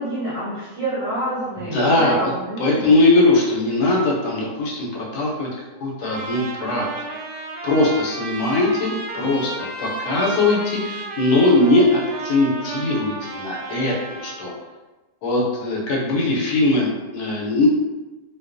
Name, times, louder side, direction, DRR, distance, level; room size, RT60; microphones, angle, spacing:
voice 1, 0.0-2.9, right 1 dB, 50° right, -10 dB, 0.9 m, -27 dB
voice 2, 1.7-2.2 2.6-5.5 5.8-6.9 7.6-14.5 15.2-17.7, left 2 dB, 75° left, -3 dB, 1.1 m, -20 dB
Trumpet, 6.0-14.6, right 2 dB, 80° right, 1.2 m, -33 dB
2.6 x 2.2 x 2.4 m, 1.1 s
omnidirectional pair, 1.8 m